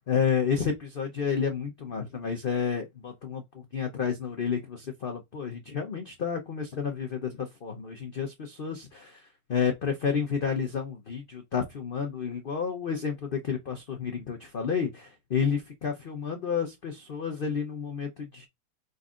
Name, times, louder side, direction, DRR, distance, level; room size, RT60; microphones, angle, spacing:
voice 1, 0.1-3.4 3.7-9.2 9.5-18.5, left 6 dB, 50° left, 0.6 m, -30 dB
5.2 x 3.9 x 2.4 m
omnidirectional pair, 1.8 m